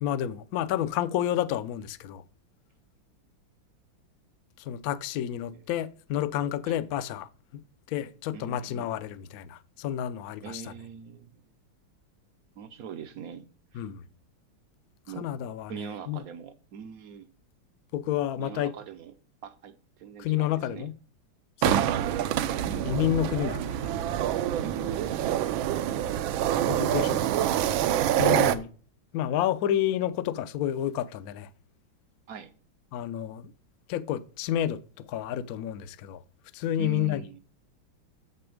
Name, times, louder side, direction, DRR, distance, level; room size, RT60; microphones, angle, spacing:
voice 1, 0.0-2.2 4.6-7.3 7.9-10.7 13.7-14.0 15.2-15.7 16.1-16.2 17.9-18.7 20.2-20.9 21.6-21.9 22.8-23.9 26.7-27.3 28.2-28.7 29.1-31.5 32.9-33.5 33.9-36.2 36.5-37.2, left 11 dB, 70° left, 0.9 m, -30 dB
voice 2, 8.3-8.9 10.4-11.3 12.6-13.5 13.7-13.8 15.1-15.3 15.7-17.3 18.4-19.1 19.4-19.7 20.0-20.9 22.7-23.0 24.6-25.3 32.3-32.5 36.8-37.4, right 7 dB, 70° right, 0.8 m, -42 dB
sound 1, 21.6-28.6, right 11 dB, 85° right, 1.4 m, -26 dB
7.1 x 6.7 x 5.1 m
omnidirectional pair, 2.1 m